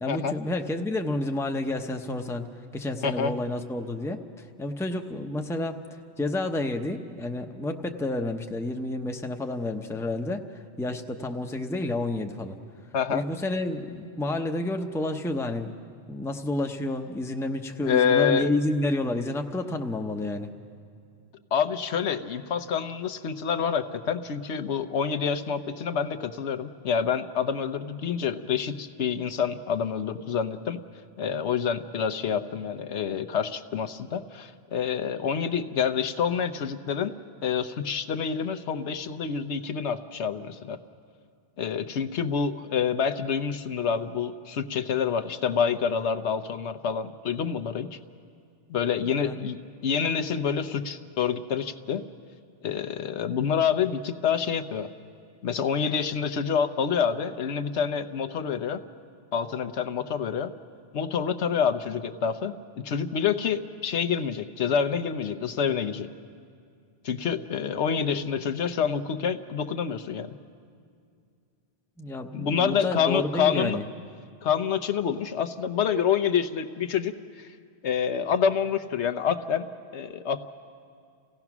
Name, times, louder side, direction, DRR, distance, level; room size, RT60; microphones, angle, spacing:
voice 1, 0.0-2.5 2.7-4.2 4.6-5.8 6.2-10.4 10.8-12.6 13.1-15.7 16.1-20.5 49.1-49.6 72.0-73.8, left 2 dB, 5° left, 4 dB, 0.6 m, -30 dB
voice 2, 17.8-18.5 21.5-30.8 31.2-40.8 41.6-48.0 48.7-52.0 52.6-54.9 55.4-58.8 59.3-60.5 60.9-62.5 62.8-66.1 67.0-70.4 72.3-73.8 74.4-77.5 77.8-79.7 79.9-80.5, left 7 dB, 85° left, 10 dB, 1.1 m, -27 dB
28.0 x 16.5 x 6.0 m, 2.3 s
omnidirectional pair, 1.1 m